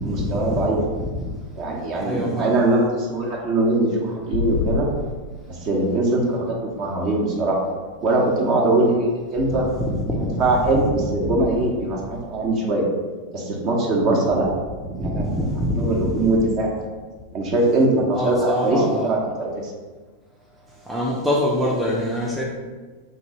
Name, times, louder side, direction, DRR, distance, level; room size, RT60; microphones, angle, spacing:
voice 1, 0.0-0.8 1.6-4.9 5.6-7.6 8.0-9.7 10.2-12.9 13.3-14.5 15.0-16.7 17.3-19.7, right 2 dB, 40° right, -1 dB, 0.9 m, -22 dB
voice 2, 2.0-2.5 9.8-10.5 10.9-11.0 15.0-16.2 18.1-19.1 20.9-22.4, equal, 5° right, -4 dB, 0.5 m, -24 dB
sound 1, 4.3-4.9, left 4 dB, 70° left, 0.5 m, -24 dB
3.8 x 2.6 x 4.3 m, 1.4 s
figure-of-eight pair, 90°, 0 cm